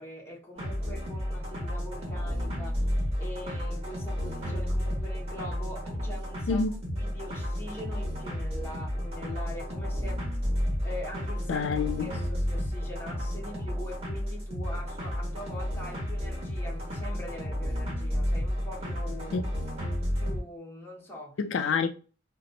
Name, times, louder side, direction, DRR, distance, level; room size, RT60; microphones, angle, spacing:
voice 1, 0.0-6.7 7.0-10.2 10.6-11.7 12.0-19.5 20.2-21.4, left 1 dB, 10° left, 0.9 m, -43 dB
sound 1, 0.6-20.4, equal, 30° right, 1.2 m, -32 dB
voice 2, 11.5-12.1 19.3-19.5 21.4-21.9, left 5 dB, 75° left, 0.3 m, -27 dB
4.0 x 2.1 x 2.6 m
head